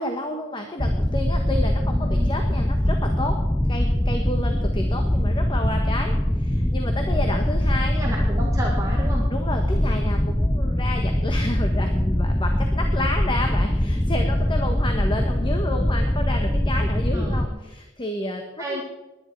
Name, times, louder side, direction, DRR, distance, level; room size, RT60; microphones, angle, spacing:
voice 1, 0.0-3.4 3.7-8.2 9.3-18.8, left 1 dB, 25° left, 4 dB, 1.3 m, -31 dB
sound 1, 0.8-17.5, left 1 dB, 10° left, 0.5 m, -22 dB
voice 2, 1.9-2.3 7.9-9.3 17.1-17.5 18.6-18.8, right 1 dB, 15° right, -3 dB, 2.1 m, -32 dB
20.5 x 10.0 x 4.6 m, 1.1 s
head